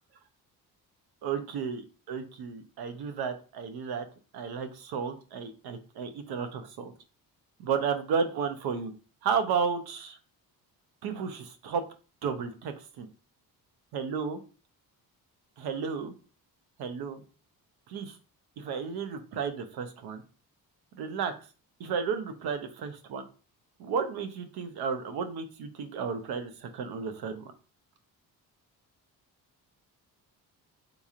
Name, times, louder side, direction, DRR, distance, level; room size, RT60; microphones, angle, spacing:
voice 1, 1.2-4.0 4.3-6.9 7.6-8.9 9.2-10.2 11.0-11.8 12.2-13.1 13.9-14.4 15.6-16.1 16.8-17.2 17.9-18.2 18.6-20.2 21.0-21.3 21.8-23.2 23.8-27.4, right 6 dB, 80° right, 8 dB, 0.7 m, -33 dB
3.8 x 2.9 x 2.4 m, 0.37 s
cardioid pair, 180°, 37 cm